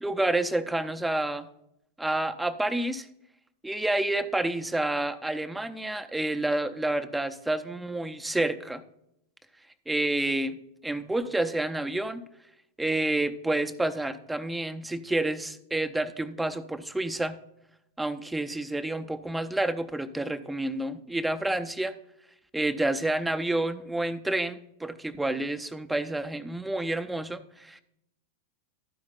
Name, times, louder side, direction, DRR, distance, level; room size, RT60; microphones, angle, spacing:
voice 1, 0.0-1.5 2.0-3.1 3.6-8.8 9.9-10.6 10.8-12.2 12.8-17.4 18.0-21.9 22.5-27.8, right 2 dB, 5° right, 9 dB, 0.6 m, -29 dB
12.5 x 5.1 x 5.2 m, 0.79 s
figure-of-eight pair, 90°, 0 cm